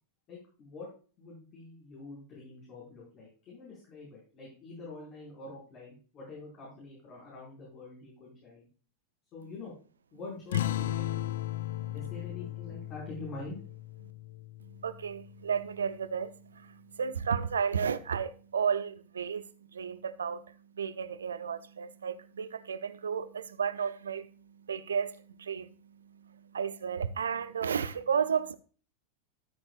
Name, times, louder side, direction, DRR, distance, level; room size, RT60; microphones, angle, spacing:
voice 1, 0.3-0.9 1.2-8.7 9.3-9.7 10.1-11.4 11.9-13.6, left 3 dB, 35° left, 5.4 m, -45 dB
sound 1, 10.5-15.5, left 13 dB, 60° left, 0.5 m, -36 dB
voice 2, 11.6-11.9 14.6-28.5, right 7 dB, 70° right, 0.7 m, -33 dB
13.0 x 8.8 x 2.5 m
figure-of-eight pair, 90°, 0 cm